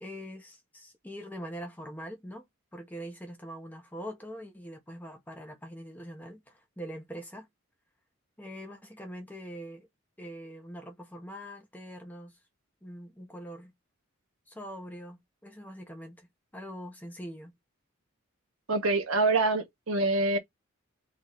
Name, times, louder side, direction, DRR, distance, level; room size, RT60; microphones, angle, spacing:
voice 1, 0.0-2.5 2.7-7.5 8.4-9.9 10.2-12.4 12.8-13.7 14.5-17.5, equal, 10° left, 1.1 m, -43 dB
voice 2, 18.7-20.4, right 2 dB, 85° right, 1.4 m, -25 dB
4.2 x 3.9 x 3.2 m
head